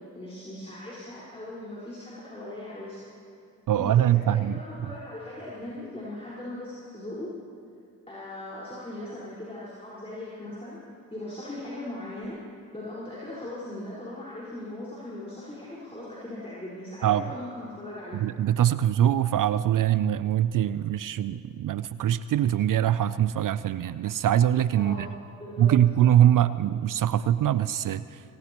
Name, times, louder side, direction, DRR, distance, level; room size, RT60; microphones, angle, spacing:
voice 1, 0.0-3.0 3.7-7.3 8.1-10.8 11.1-12.4 12.7-18.2 24.8-25.1 25.4-25.7, left 1 dB, 15° left, -8 dB, 4.7 m, -39 dB
voice 2, 3.7-4.6 17.0-17.2 18.1-25.1 25.6-28.0, right 11 dB, 50° right, 15 dB, 0.5 m, -23 dB
19.5 x 18.0 x 3.0 m, 2.5 s
supercardioid pair, 45°, 41 cm